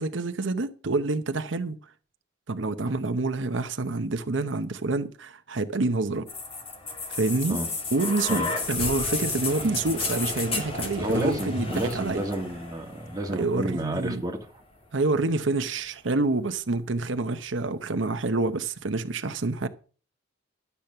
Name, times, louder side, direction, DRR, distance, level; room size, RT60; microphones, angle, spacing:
voice 1, 0.0-1.8 2.5-6.3 7.1-7.6 7.9-12.2 13.3-14.2 14.9-19.7, right 3 dB, 80° right, 0.9 m, -27 dB
sound 1, 6.3-14.2 15.2-15.3, left 3 dB, 30° left, 2.3 m, -32 dB
voice 2, 11.0-14.5, right 1 dB, 20° right, 1.8 m, -30 dB
12.0 x 8.3 x 5.7 m
head